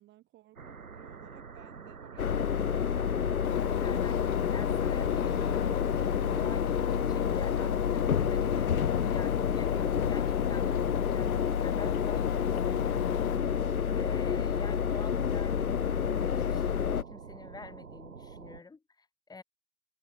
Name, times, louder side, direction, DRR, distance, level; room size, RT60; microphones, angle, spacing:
voice 1, 0.0-3.3 8.9-9.4 14.0-14.4, right 15 dB, 25° right, 2.7 m, -57 dB
sound 1, 0.6-18.6, right 5 dB, 75° right, 5.8 m, -47 dB
sound 2, 2.2-17.0, left 7 dB, 80° left, 0.9 m, -29 dB
Engine, 3.4-13.4, left 36 dB, 30° left, 0.8 m, -37 dB
voice 2, 3.8-13.5 13.9-19.4, left 4 dB, 10° left, 4.0 m, -48 dB
figure-of-eight pair, 105°, 42 cm